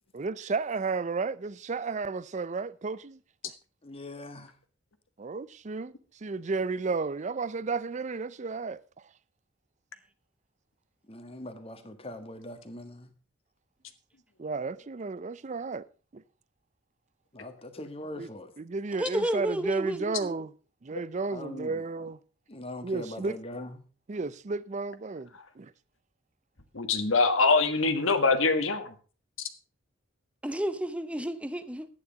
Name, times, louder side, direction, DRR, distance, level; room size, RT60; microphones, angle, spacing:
voice 1, 0.1-3.5 5.2-5.9 6.2-8.8 14.4-15.8 16.1-16.2 18.2-18.3 18.6-20.5 20.8-22.2 22.8-23.4 24.1-25.3 25.6-25.7, right 4 dB, 35° right, 0.5 m, -33 dB
voice 2, 3.8-4.5 11.1-13.1 17.3-18.5 21.3-21.7 22.5-23.7, left 1 dB, 30° left, 1.6 m, -41 dB
voice 3, 18.9-20.4 30.4-31.9, equal, 5° right, 0.8 m, -31 dB
voice 4, 26.7-28.9, left 3 dB, 80° left, 1.6 m, -23 dB
11.5 x 9.6 x 5.2 m
head